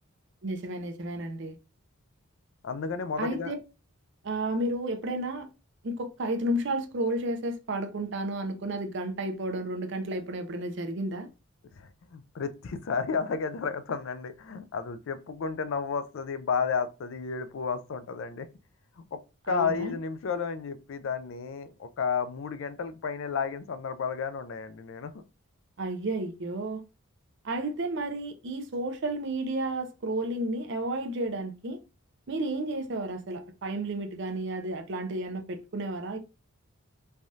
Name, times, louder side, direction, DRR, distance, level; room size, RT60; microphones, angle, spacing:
voice 1, 0.4-1.6 3.2-3.6 4.2-5.5 5.8-11.3 19.5-19.9 25.8-26.8 27.4-31.8 32.3-36.2, right 1 dB, 55° right, 0.5 m, -32 dB
voice 2, 2.6-3.5 11.8-18.5 19.0-19.2 19.5-25.1, left 5 dB, 65° left, 0.4 m, -32 dB
3.3 x 2.3 x 2.6 m
head